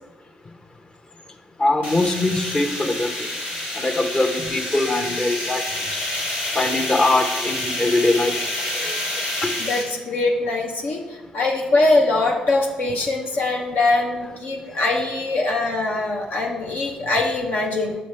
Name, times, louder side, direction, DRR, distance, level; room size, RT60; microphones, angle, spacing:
voice 1, 1.6-3.1 3.7-5.6 6.5-8.4 8.8-9.0 9.4-9.5, left 2 dB, 30° left, 6 dB, 0.8 m, -22 dB
sound 1, 1.8-9.8, left 1 dB, 85° left, 2.1 m, -28 dB
voice 2, 9.6-18.0, left 2 dB, 70° left, 0 dB, 0.7 m, -22 dB
6.7 x 5.3 x 3.3 m, 1.2 s
supercardioid pair, 55°, 3 cm